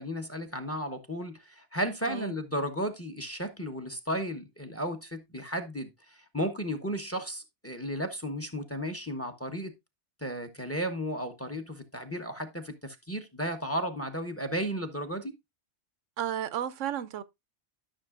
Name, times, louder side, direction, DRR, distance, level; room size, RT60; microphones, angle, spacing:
voice 1, 0.0-9.7 10.2-15.3, equal, 15° left, 0.9 m, -34 dB
voice 2, 16.2-17.2, right 10 dB, 90° right, 1.0 m, -33 dB
13.0 x 6.3 x 2.4 m
omnidirectional pair, 1.2 m